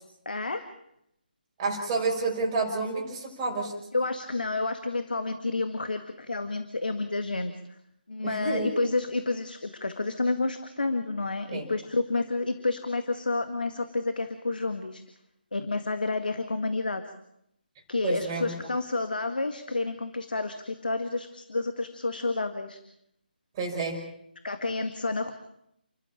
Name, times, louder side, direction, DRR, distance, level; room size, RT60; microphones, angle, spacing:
voice 1, 0.3-0.6 3.9-7.5 8.1-15.0 15.5-17.0 17.9-22.8 24.4-25.3, left 3 dB, 65° left, 8 dB, 1.9 m, -30 dB
voice 2, 1.6-3.7 8.2-8.9 11.5-11.7 18.0-18.6 23.6-24.0, right 3 dB, 20° right, 0 dB, 5.6 m, -29 dB
30.0 x 12.5 x 8.9 m, 0.77 s
figure-of-eight pair, 150°, 5 cm